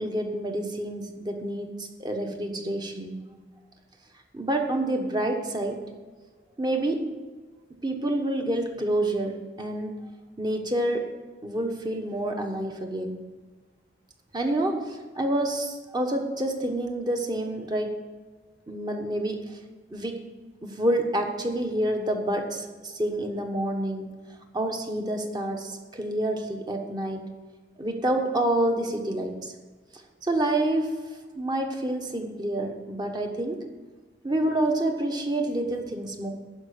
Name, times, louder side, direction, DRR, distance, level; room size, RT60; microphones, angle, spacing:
voice 1, 0.0-3.2 4.3-5.8 6.6-7.1 7.8-10.0 10.4-11.1 11.4-13.2 14.3-18.0 18.7-19.6 19.9-20.2 20.6-24.1 24.5-27.3 27.8-29.5 30.2-30.9 31.3-33.6 34.2-36.3, right 1 dB, 25° right, 3 dB, 1.2 m, -28 dB
11.5 x 5.2 x 8.5 m, 1.4 s
head